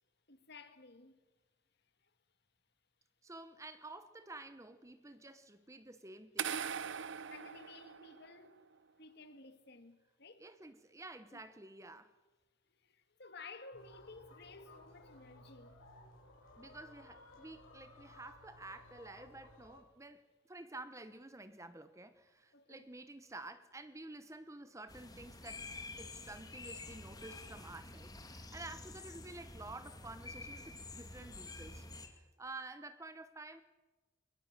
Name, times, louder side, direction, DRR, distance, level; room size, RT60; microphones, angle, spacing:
voice 1, 0.3-1.2 2.0-2.1 7.3-8.6 9.0-10.4 11.3-11.4 12.7-15.8 16.5-16.6 18.1-18.2 22.5-22.9, left 3 dB, 50° left, 1.8 m, -55 dB
voice 2, 3.2-6.5 10.4-12.1 16.6-20.2 20.5-25.7 26.0-31.9 32.1-33.6, right 2 dB, 15° right, 0.8 m, -51 dB
sound 1, 6.4-8.5, right 7 dB, 60° right, 0.7 m, -40 dB
sound 2, 13.7-19.8, left 2 dB, 75° left, 5.0 m, -58 dB
sound 3, 24.9-32.1, left 2 dB, 20° left, 2.0 m, -49 dB
22.0 x 21.5 x 7.3 m
head